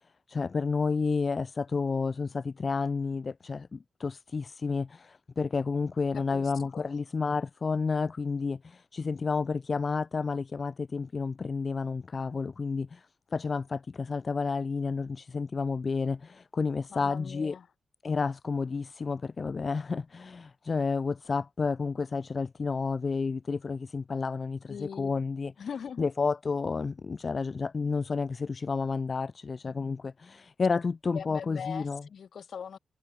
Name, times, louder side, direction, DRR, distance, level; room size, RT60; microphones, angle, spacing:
voice 1, 0.3-17.5 18.0-25.5 26.0-32.0, left 4 dB, 40° left, 0.6 m, -31 dB
voice 2, 6.1-6.9 16.9-17.7 24.7-25.1 25.6-26.1 30.7-30.8 31.1-32.8, left 7 dB, 65° left, 1.7 m, -41 dB
cardioid pair, 100°, 0 cm